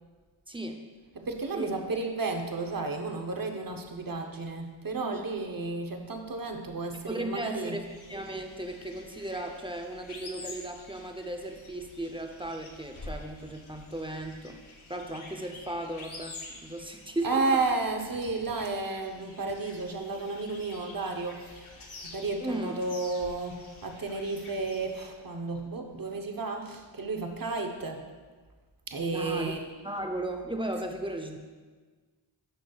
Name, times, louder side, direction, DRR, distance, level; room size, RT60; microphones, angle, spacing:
voice 1, 0.5-0.8 1.5-1.7 5.0-5.2 7.1-14.6 14.9-17.6 22.4-22.8 29.1-29.5 29.8-31.4, right 1 dB, 10° right, 3 dB, 0.6 m, -36 dB
voice 2, 1.1-7.8 17.2-28.1 28.9-29.7, right 3 dB, 45° right, 3 dB, 0.9 m, -32 dB
sound 1, 7.8-25.1, left 2 dB, 85° left, 1.1 m, -48 dB
11.5 x 6.0 x 2.3 m, 1.4 s
wide cardioid pair, 70°, 47 cm